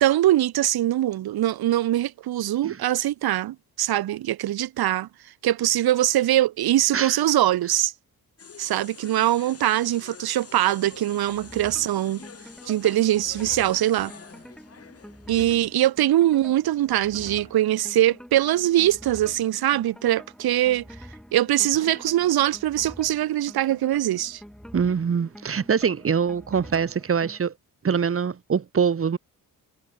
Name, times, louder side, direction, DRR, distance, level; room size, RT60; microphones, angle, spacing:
voice 1, 0.0-5.1 5.4-7.9 8.6-12.2 12.7-14.1 15.3-20.8 21.3-24.4, right 13 dB, 80° right, 0.9 m, -22 dB
sound 1, 8.4-15.5, left 6 dB, 40° left, 2.5 m, -46 dB
sound 2, 10.8-27.4, equal, ahead, 6.0 m, -46 dB
sound 3, 14.0-15.2 17.1-18.3 21.7-23.0, left 2 dB, 20° left, 3.1 m, -52 dB
voice 2, 24.7-27.5 27.8-29.2, right 6 dB, 35° right, 1.3 m, -24 dB
cardioid pair, 100°, 37 cm